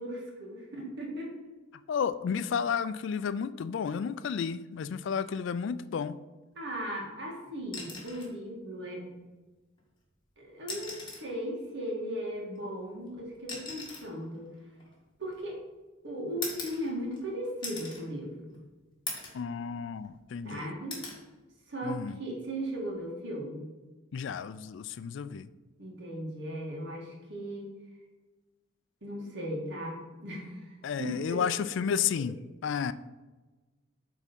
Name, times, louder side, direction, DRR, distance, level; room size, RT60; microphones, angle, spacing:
voice 1, 0.0-1.3 6.6-9.2 10.4-14.5 15.2-15.6 16.0-18.6 20.4-21.0 21.7-23.7 25.8-27.7 29.0-31.4, equal, 60° right, -1 dB, 1.8 m, -37 dB
voice 2, 1.9-6.2 19.3-20.7 21.8-22.2 24.1-25.5 30.8-32.4 32.6-32.9, left 7 dB, 65° left, 14 dB, 0.3 m, -32 dB
sound 1, 7.6-8.4 9.8-9.9 10.6-11.4 12.5-15.6 16.4-17.3 17.6-18.0 18.5-18.6 19.1-19.5 19.9-20.5 20.9-21.2 22.7-22.9, left 3 dB, 25° left, 1.8 m, -41 dB
8.5 x 3.6 x 5.3 m, 1.2 s
head